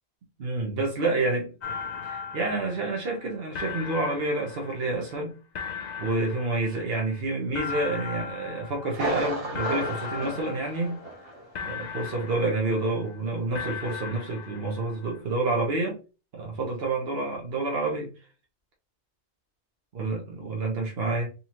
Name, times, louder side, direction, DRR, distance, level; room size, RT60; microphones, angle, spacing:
voice 1, 0.4-1.5 2.1-5.3 6.0-11.0 11.6-16.0 16.3-18.1 19.9-21.3, right 2 dB, 65° right, 1.2 m, -28 dB
sound 1, 1.6-3.3 3.5-5.2 5.6-7.2 7.5-9.3 9.5-11.3 11.5-13.2 13.6-15.2, left 6 dB, 50° left, 0.6 m, -38 dB
Thunder, 8.9-11.5 11.8-11.9 12.4-12.5, right 2 dB, 35° right, 1.2 m, -33 dB
4.1 x 2.8 x 2.9 m
omnidirectional pair, 1.1 m